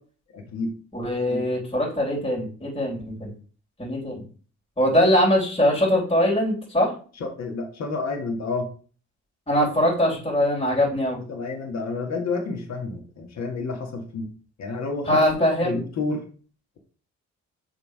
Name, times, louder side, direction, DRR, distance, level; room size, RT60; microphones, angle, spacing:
voice 1, 0.3-0.8 1.2-1.4 7.2-8.7 11.3-14.3 14.6-15.2 15.6-16.2, left 3 dB, 60° left, 3 dB, 1.8 m, -30 dB
voice 2, 0.9-3.3 3.8-4.2 4.8-6.9 9.5-11.2 15.1-15.7, equal, 20° left, -4 dB, 3.6 m, -22 dB
6.9 x 3.8 x 4.8 m, 0.41 s
cardioid pair, 90°, 30 cm